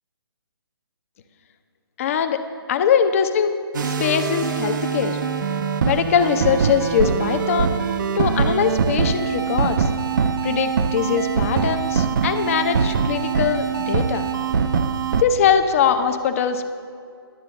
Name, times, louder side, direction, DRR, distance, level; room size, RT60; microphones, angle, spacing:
voice 1, 2.0-2.4 2.7-3.5 3.8-5.2 5.9-7.7 8.2-9.9 10.4-14.3 15.2-16.6, left 7 dB, 35° left, 8 dB, 0.7 m, -21 dB
sound 1, 3.7-15.2, right 6 dB, 50° right, 0.6 m, -23 dB
11.0 x 7.5 x 6.9 m, 2.3 s
figure-of-eight pair, 150°, 13 cm